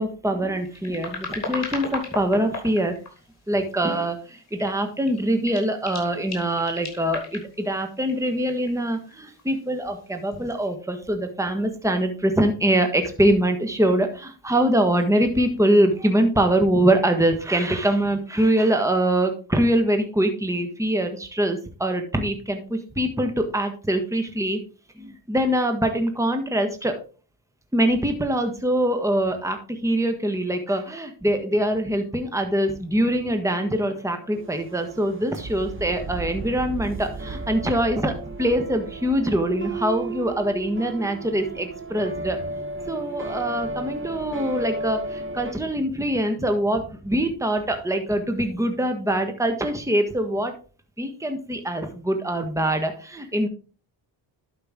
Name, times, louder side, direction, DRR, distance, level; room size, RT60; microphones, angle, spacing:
voice 1, 0.0-2.9 3.5-24.6 25.0-27.0 27.7-42.4 42.9-50.5 51.0-53.5, right 1 dB, 5° right, 6 dB, 1.5 m, -23 dB
sound 1, 0.6-3.5 4.0-4.8 5.0-9.6 10.3-10.5, left 3 dB, 35° left, 4.2 m, -36 dB
sound 2, 32.7-45.5, right 2 dB, 25° right, 1.3 m, -34 dB
11.5 x 5.4 x 3.7 m, 0.38 s
cardioid pair, 70°, 45 cm